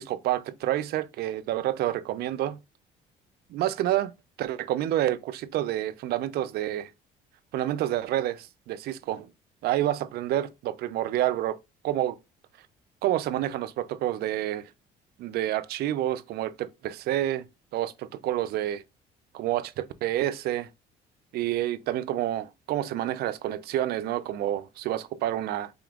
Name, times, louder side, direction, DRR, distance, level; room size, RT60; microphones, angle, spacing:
voice 1, 0.0-2.6 3.5-4.1 4.4-6.9 7.5-9.3 9.6-11.6 11.8-12.2 13.0-14.7 15.2-17.4 17.7-18.8 19.3-20.7 21.3-25.7, right 13 dB, 70° right, 0.4 m, -28 dB
5.0 x 2.9 x 2.4 m
cardioid pair, 110°, 17 cm